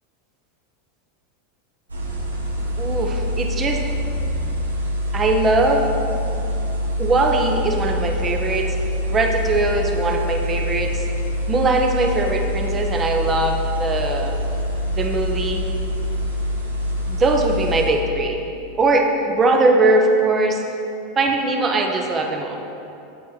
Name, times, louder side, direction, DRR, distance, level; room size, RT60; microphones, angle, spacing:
sound 1, 1.9-17.9, equal, 85° right, 1.1 m, -25 dB
voice 1, 2.8-3.8 5.1-5.9 7.0-8.8 9.1-11.1 11.5-14.4 15.0-15.7 17.1-18.4 18.8-20.6 21.2-22.6, right 2 dB, 25° right, 2 dB, 1.1 m, -20 dB
8.4 x 8.1 x 4.1 m, 2.8 s
figure-of-eight pair, 85°, 0 cm